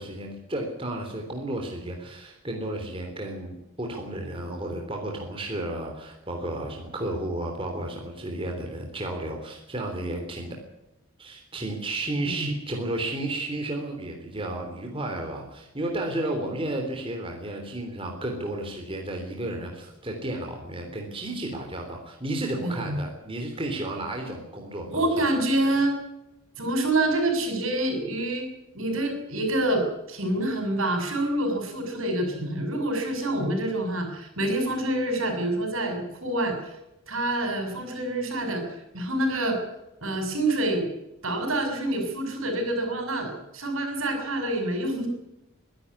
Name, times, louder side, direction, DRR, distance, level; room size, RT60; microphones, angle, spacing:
voice 1, 0.0-10.6 11.2-25.1, right 1 dB, 25° right, 2 dB, 3.4 m, -32 dB
voice 2, 22.6-23.0 24.9-26.0 26.6-36.7 37.1-39.6 40.0-40.8 41.2-45.1, right 1 dB, 70° right, 5 dB, 6.5 m, -27 dB
23.5 x 11.5 x 9.7 m, 0.93 s
head